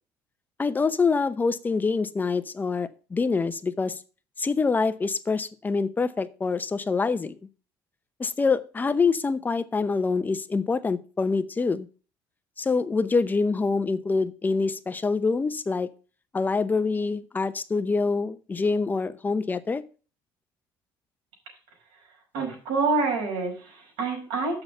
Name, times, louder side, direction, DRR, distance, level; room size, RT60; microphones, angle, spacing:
voice 1, 0.6-4.0 4.4-7.4 8.2-11.9 12.6-15.9 16.3-19.8, left 4 dB, 20° left, 13 dB, 0.7 m, -25 dB
voice 2, 22.3-24.6, right 4 dB, 90° right, -1 dB, 5.7 m, -27 dB
6.9 x 6.3 x 6.7 m, 0.36 s
cardioid pair, 115°, 9 cm